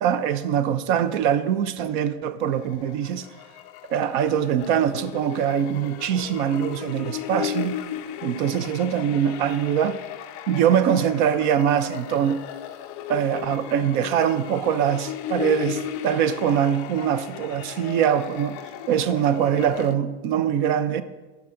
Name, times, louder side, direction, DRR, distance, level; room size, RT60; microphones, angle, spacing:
voice 1, 0.0-3.2 3.9-7.7 8.2-10.0 10.5-12.4 13.1-18.6 18.9-21.0, right 9 dB, 50° right, 0.6 m, -23 dB
sound 1, 2.5-19.9, left 11 dB, 30° left, 0.4 m, -36 dB
10.5 x 5.9 x 3.8 m
supercardioid pair, 150°, 33 cm